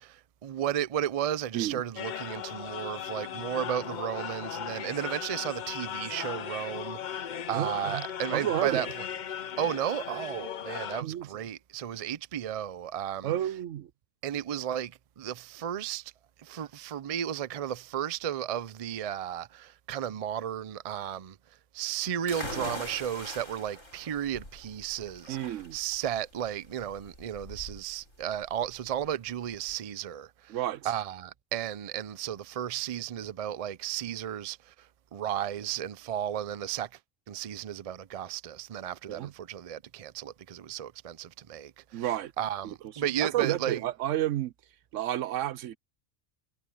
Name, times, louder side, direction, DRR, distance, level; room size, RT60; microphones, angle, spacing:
voice 1, 0.0-8.9 9.6-13.3 14.2-16.1 16.4-21.4 21.7-30.6 30.8-34.9 35.1-36.9 37.3-43.8, right 10 dB, 60° right, 0.3 m, -34 dB
sound 1, 2.0-11.0, left 9 dB, 55° left, 0.5 m, -37 dB
voice 2, 7.5-8.0 8.3-8.8 11.0-11.3 13.2-13.9 25.3-25.8 30.5-30.9 39.1-39.3 41.9-42.3 42.6-42.7 43.2-44.5 44.9-45.8, right 12 dB, 75° right, 1.0 m, -30 dB
sound 2, 22.3-29.8, left 1 dB, 75° left, 7.7 m, -43 dB
omnidirectional pair, 1.3 m